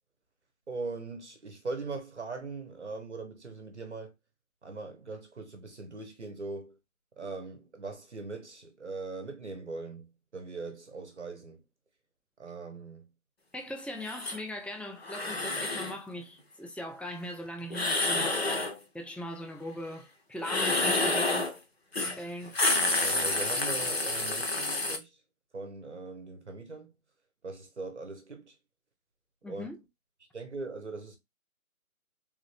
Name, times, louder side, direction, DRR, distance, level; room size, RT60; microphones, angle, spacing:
voice 1, 0.7-4.1 4.6-6.8 7.2-11.6 12.4-13.1 23.0-25.2 25.5-26.9 27.4-28.5 29.5-29.7 30.3-31.2, right 3 dB, 50° right, 0.7 m, -40 dB
voice 2, 13.5-18.5 18.9-21.6 22.0-22.6 29.4-29.8, left 1 dB, 5° left, 0.3 m, -40 dB
sound 1, 14.1-14.4 15.0-16.0 17.7-18.8 20.4-21.5 21.9-22.2 22.4-25.0, left 2 dB, 45° left, 0.7 m, -28 dB
3.6 x 2.2 x 3.1 m
hypercardioid pair, 180°, 43 cm